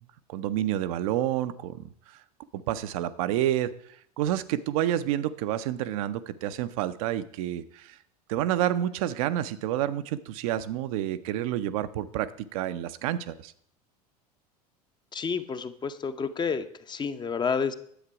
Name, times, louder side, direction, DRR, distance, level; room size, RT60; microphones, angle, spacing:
voice 1, 0.3-1.8 2.1-2.2 2.5-3.7 4.2-8.0 8.3-13.5, right 12 dB, 60° right, 12 dB, 0.6 m, -29 dB
voice 2, 15.1-17.7, left 5 dB, 20° left, 11 dB, 0.7 m, -30 dB
10.0 x 7.4 x 4.8 m, 0.66 s
figure-of-eight pair, 75°, 20 cm